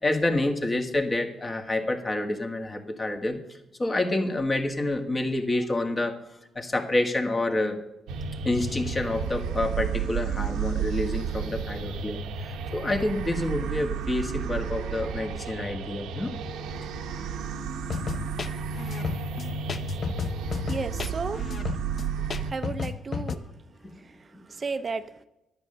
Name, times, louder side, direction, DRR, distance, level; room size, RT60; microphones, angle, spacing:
voice 1, 0.0-6.2 6.5-7.8 8.4-16.3 23.8-23.9 24.3-24.4, left 2 dB, 25° left, 5 dB, 1.6 m, -28 dB
sound 1, 8.1-22.5, right 6 dB, 85° right, 0.9 m, -32 dB
sound 2, 17.9-23.4, left 5 dB, 45° left, 0.8 m, -32 dB
voice 2, 20.7-21.5 22.4-23.4 24.0-25.2, right 4 dB, 35° right, 10 dB, 0.6 m, -34 dB
10.5 x 8.8 x 6.7 m, 0.93 s
cardioid pair, 90°, 0 cm